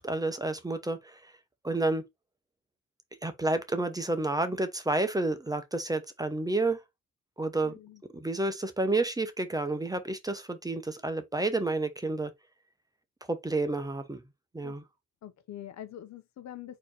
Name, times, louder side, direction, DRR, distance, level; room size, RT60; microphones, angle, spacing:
voice 1, 0.0-1.3 1.6-2.0 3.2-6.8 7.4-7.7 8.1-12.3 13.3-14.2 14.5-14.8, right 2 dB, 10° right, 0.8 m, -30 dB
voice 2, 7.6-8.0 14.6-14.7 15.2-16.8, left 11 dB, 65° left, 0.9 m, -44 dB
4.2 x 3.0 x 4.0 m
cardioid pair, 90°, 30 cm